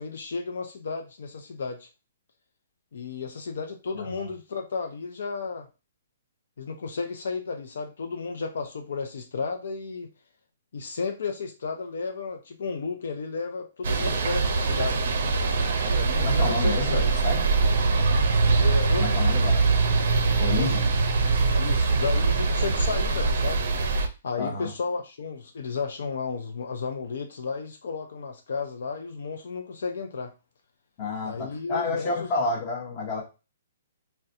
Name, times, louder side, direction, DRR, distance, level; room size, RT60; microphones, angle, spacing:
voice 1, 0.0-1.9 2.9-5.7 6.6-10.1 10.7-15.1 15.8-17.2 18.6-19.4 20.6-21.0 21.6-23.6 24.2-30.3 31.2-32.3, left 4 dB, 65° left, 0.5 m, -33 dB
sound 1, 13.8-24.1, right 4 dB, 55° right, 0.5 m, -23 dB
voice 2, 16.2-17.4 19.0-19.6 20.4-20.8 24.4-24.7 31.0-33.2, left 3 dB, 25° left, 0.8 m, -30 dB
3.9 x 2.2 x 2.6 m
hypercardioid pair, 175°, 0 cm